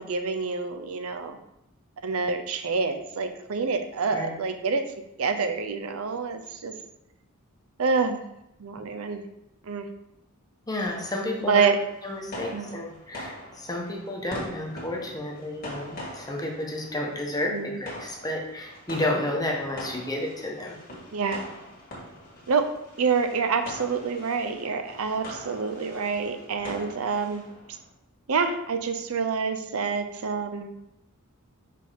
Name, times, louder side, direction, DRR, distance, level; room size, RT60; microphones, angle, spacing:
voice 1, 0.0-1.4 2.0-4.8 5.2-6.7 7.8-8.3 8.6-9.2 9.7-9.9 11.4-11.8 12.5-12.7 17.5-17.8 21.1-21.4 22.5-22.7 23.0-27.4 28.3-30.7, right 5 dB, 80° right, 7 dB, 0.6 m, -27 dB
voice 2, 10.7-11.7 12.0-20.8, left 1 dB, 20° left, 0 dB, 1.0 m, -31 dB
sound 1, 10.8-27.9, equal, 45° left, 1.8 m, -43 dB
5.0 x 3.6 x 5.7 m, 0.84 s
head